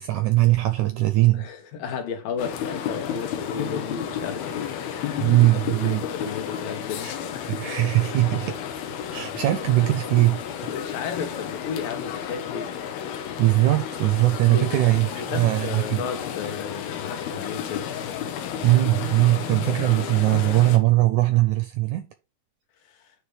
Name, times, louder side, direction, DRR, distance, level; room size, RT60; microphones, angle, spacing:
voice 1, 0.0-1.4 5.2-6.0 7.0-7.1 7.5-8.6 9.1-10.7 13.4-16.0 18.6-22.1, right 17 dB, 85° right, 1.7 m, -20 dB
voice 2, 1.3-5.3 5.8-7.6 10.7-12.7 14.5-17.9, left 6 dB, 75° left, 2.7 m, -34 dB
sound 1, 2.4-20.8, left 9 dB, 90° left, 3.0 m, -32 dB
9.9 x 3.3 x 4.9 m
omnidirectional pair, 4.1 m